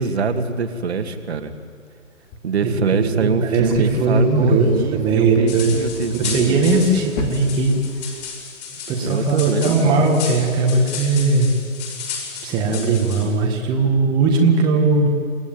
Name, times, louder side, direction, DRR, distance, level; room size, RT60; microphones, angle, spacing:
voice 1, 0.0-1.5 2.4-6.5 9.0-10.1, right 5 dB, 50° right, 7 dB, 2.3 m, -23 dB
sound 1, 2.1-8.3, left 4 dB, 10° left, 1.0 m, -37 dB
voice 2, 2.6-4.7 4.9-5.8 6.1-7.7 8.9-11.5 12.4-15.1, right 3 dB, 10° right, 0 dB, 1.9 m, -18 dB
sound 2, 5.5-13.2, left 6 dB, 30° left, 6.1 m, -33 dB
28.5 x 18.0 x 9.3 m, 2.1 s
hypercardioid pair, 155°, 41 cm